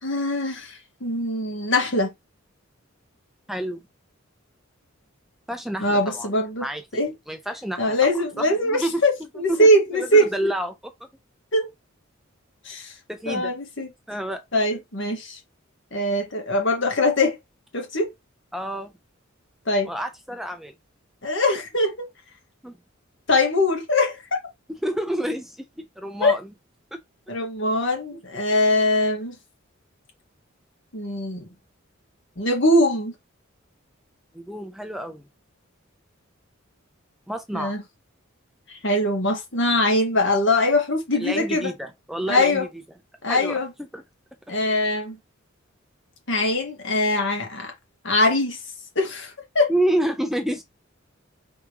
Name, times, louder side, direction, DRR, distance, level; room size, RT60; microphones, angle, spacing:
voice 1, 0.0-2.1 5.8-6.7 6.9-7.1 7.8-10.2 11.5-11.7 12.7-12.9 13.3-13.9 14.5-15.4 15.9-17.4 17.7-18.1 19.7-19.9 21.2-22.1 23.3-24.2 26.2-26.3 27.3-29.3 30.9-31.5 32.4-33.1 37.5-37.8 38.7-41.7 42.3-42.7 43.2-43.7 44.5-45.2 46.3-47.7 48.0-48.6 49.0-49.7, left 1 dB, 65° left, 1.8 m, -22 dB
voice 2, 3.5-3.8 5.5-6.3 6.6-7.0 7.3-8.0 8.4-10.8 13.1-14.4 18.5-18.9 19.8-20.7 22.6-22.8 24.8-25.6 26.0-26.5 27.4-27.5 28.1-28.2 34.3-35.3 37.3-37.7 41.2-42.7 43.3-44.0 49.7-50.6, right 1 dB, ahead, 0.6 m, -29 dB
4.8 x 3.6 x 3.0 m
head